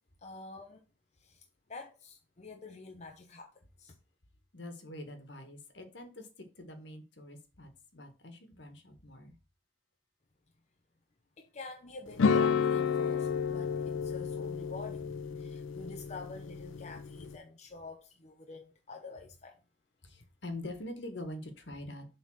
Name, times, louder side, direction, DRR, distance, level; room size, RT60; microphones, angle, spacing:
voice 1, 0.2-0.8 1.2-1.4 1.7-4.0 11.4-19.6, left 3 dB, 35° left, 0.8 m, -47 dB
voice 2, 4.5-9.3 20.0-22.1, left 1 dB, 65° left, 1.6 m, -45 dB
sound 1, 12.2-17.4, left 6 dB, 85° left, 0.5 m, -31 dB
7.3 x 3.8 x 6.4 m
head